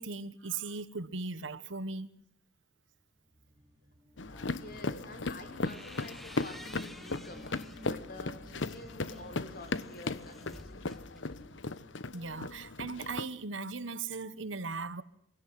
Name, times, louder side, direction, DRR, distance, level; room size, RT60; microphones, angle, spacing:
voice 1, 0.0-2.1 12.1-15.0, right 4 dB, 90° right, 1.3 m, -38 dB
sound 1, 3.0-12.2, left 1 dB, 15° right, 2.8 m, -55 dB
sound 2, 4.2-13.2, left 3 dB, 80° left, 1.0 m, -37 dB
voice 2, 4.3-11.5, left 2 dB, 50° left, 4.4 m, -49 dB
sound 3, 5.5-7.9 8.4-11.7, equal, ahead, 1.2 m, -53 dB
24.5 x 17.5 x 7.7 m
head